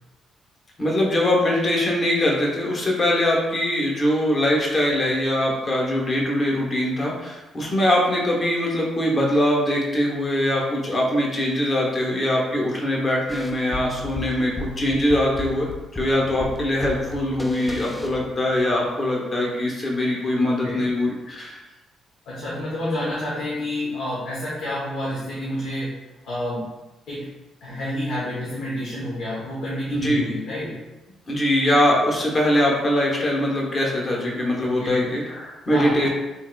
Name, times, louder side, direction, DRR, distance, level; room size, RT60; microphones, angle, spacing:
voice 1, 0.8-21.6 29.9-30.2 31.3-36.1, left 1 dB, 35° left, -2 dB, 0.9 m, -22 dB
sound 1, 13.3-18.8, left 1 dB, 10° left, 0.4 m, -34 dB
voice 2, 22.3-26.7 27.1-30.8 34.6-35.1 35.7-36.1, left 1 dB, 75° left, -6 dB, 0.8 m, -29 dB
3.6 x 3.0 x 2.2 m, 1.1 s
cardioid pair, 90°, 0 cm